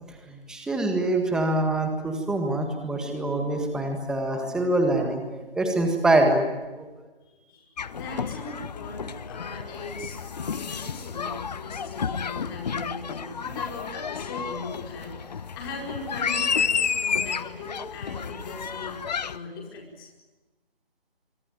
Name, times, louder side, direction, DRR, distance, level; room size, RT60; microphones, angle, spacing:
voice 1, 0.0-6.5 6.7-6.9, right 2 dB, ahead, 4 dB, 1.7 m, -25 dB
voice 2, 7.2-19.0 19.3-20.1, left 3 dB, 25° left, 0 dB, 4.8 m, -39 dB
sound 1, 7.8-19.4, left 6 dB, 45° left, 1.1 m, -31 dB
25.0 x 24.5 x 9.3 m, 1.2 s
figure-of-eight pair, 155°, 30 cm